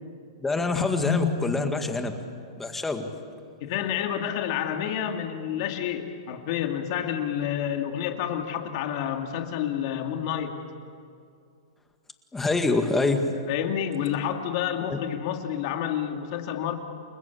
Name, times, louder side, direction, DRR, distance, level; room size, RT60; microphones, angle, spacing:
voice 1, 0.4-2.2 2.6-3.1 12.3-13.2 14.9-15.0, left 3 dB, 10° left, 5 dB, 1.9 m, -26 dB
voice 2, 1.0-1.3 3.6-10.6 13.5-16.7, left 9 dB, 45° left, 4 dB, 2.4 m, -29 dB
29.5 x 21.0 x 8.5 m, 2.3 s
hypercardioid pair, 150°, 3 cm